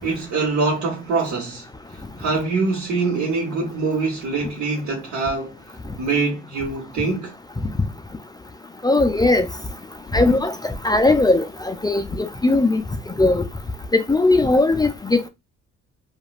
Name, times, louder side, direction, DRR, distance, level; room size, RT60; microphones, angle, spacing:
voice 1, 0.0-7.3, right 3 dB, 70° right, 1.0 m, -24 dB
voice 2, 8.8-9.5 10.1-12.8 13.2-13.4 13.9-15.3, left 2 dB, 15° left, 0.3 m, -18 dB
3.0 x 2.4 x 2.4 m
cardioid pair, 90°, 30 cm